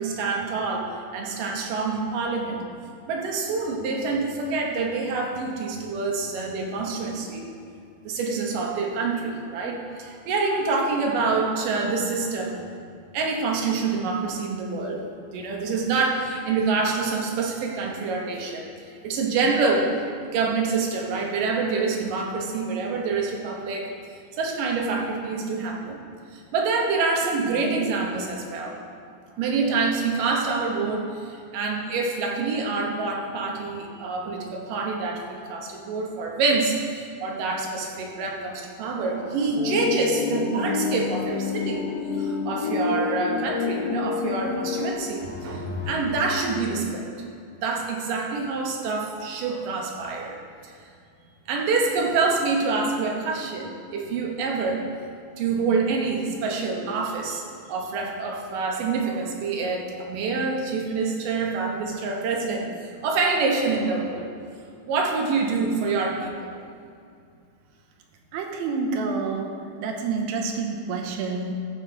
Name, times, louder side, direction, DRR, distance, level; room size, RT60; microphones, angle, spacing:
voice 1, 0.0-2.6 3.1-7.5 8.0-12.6 13.1-18.7 19.0-19.9 20.3-23.9 24.4-26.0 26.3-28.8 29.4-41.8 42.2-47.1 47.6-50.4 50.6-50.8 51.5-54.9 55.4-62.7 63.0-64.3 64.9-66.5, right 4 dB, 70° right, 0 dB, 2.5 m, -26 dB
sound 1, 38.8-46.4, left 3 dB, 50° left, 1.7 m, -45 dB
sound 2, 39.6-45.0, left 5 dB, 85° left, 1.8 m, -28 dB
voice 2, 68.3-69.5 69.8-71.5, right 4 dB, 90° right, 3 dB, 2.7 m, -28 dB
14.5 x 6.2 x 3.8 m, 2.4 s
omnidirectional pair, 4.2 m